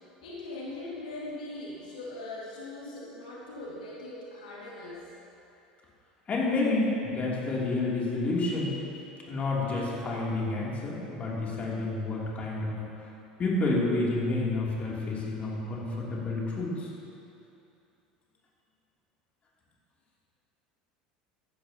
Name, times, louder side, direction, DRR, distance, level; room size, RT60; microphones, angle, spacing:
voice 1, 0.2-5.0, left 2 dB, 75° left, -6 dB, 2.1 m, -40 dB
voice 2, 6.3-8.7 9.3-12.8 13.4-16.9, left 2 dB, 30° left, -5 dB, 2.9 m, -29 dB
14.0 x 12.0 x 2.9 m, 2.8 s
hypercardioid pair, 75°, 4 cm